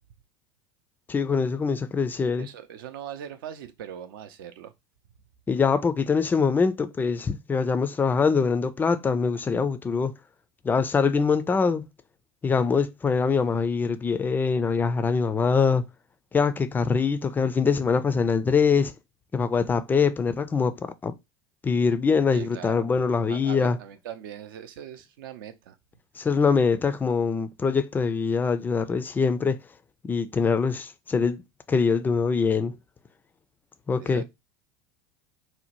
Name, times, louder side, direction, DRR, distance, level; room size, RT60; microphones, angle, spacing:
voice 1, 1.1-2.5 5.5-10.1 10.6-11.8 12.4-15.8 16.3-18.9 19.3-20.8 21.0-21.1 21.6-23.8 26.2-29.6 30.1-31.4 31.7-32.8 33.9-34.2, left 5 dB, 15° left, 0.3 m, -23 dB
voice 2, 2.4-4.7 22.3-22.9 23.3-25.8 34.0-34.2, right 9 dB, 65° right, 0.4 m, -40 dB
2.7 x 2.0 x 2.8 m
hypercardioid pair, 80°, 12 cm